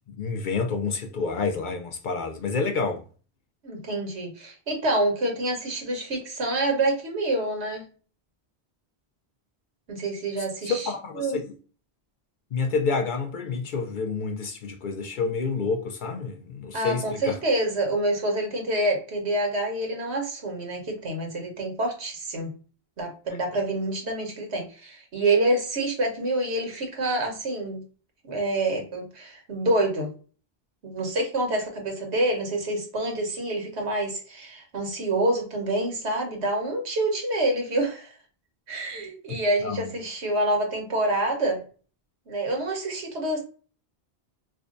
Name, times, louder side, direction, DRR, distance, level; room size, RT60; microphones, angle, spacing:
voice 1, 0.1-3.0 10.6-11.5 12.5-17.4 39.3-39.9, left 4 dB, 60° left, 0.6 m, -29 dB
voice 2, 3.6-7.8 9.9-10.9 11.2-11.4 16.7-22.5 23.0-27.8 28.3-30.1 30.8-38.1 38.7-41.6 42.3-43.4, right 1 dB, 90° right, 1.3 m, -27 dB
4.8 x 2.2 x 2.5 m
omnidirectional pair, 1.1 m